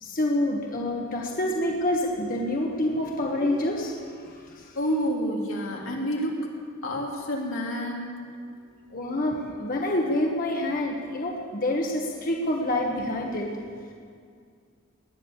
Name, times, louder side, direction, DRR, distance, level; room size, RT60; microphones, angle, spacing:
voice 1, 0.0-4.7 8.9-13.5, left 1 dB, 45° left, 0 dB, 1.5 m, -27 dB
voice 2, 4.7-6.5 6.8-8.2, equal, 90° left, -1 dB, 3.1 m, -29 dB
19.0 x 10.0 x 7.3 m, 2.2 s
head